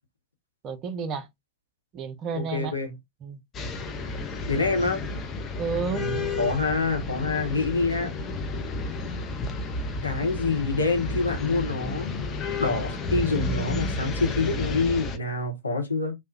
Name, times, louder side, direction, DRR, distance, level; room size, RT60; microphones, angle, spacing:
voice 1, 0.6-1.3 1.9-2.7 3.2-3.4 5.6-6.1, right 5 dB, 35° right, 0.5 m, -31 dB
voice 2, 2.3-3.0 4.5-5.0 5.9-8.1 10.0-12.1 12.6-16.2, left 3 dB, 80° left, 0.7 m, -26 dB
sound 1, 3.5-15.2, left 3 dB, 25° left, 0.4 m, -31 dB
2.6 x 2.0 x 2.3 m
figure-of-eight pair, 90°, 0 cm